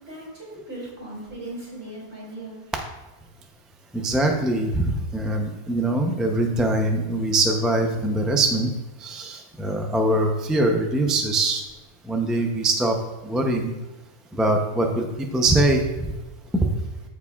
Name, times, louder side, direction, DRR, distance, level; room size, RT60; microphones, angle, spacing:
voice 1, 0.1-2.6, right 1 dB, 55° right, -5 dB, 3.1 m, -38 dB
voice 2, 3.9-8.7 9.0-11.6 12.1-13.0 13.2-13.7 14.3-15.1 15.3-15.8, right 2 dB, ahead, 2 dB, 0.4 m, -22 dB
14.0 x 4.8 x 2.4 m, 1.1 s
omnidirectional pair, 1.3 m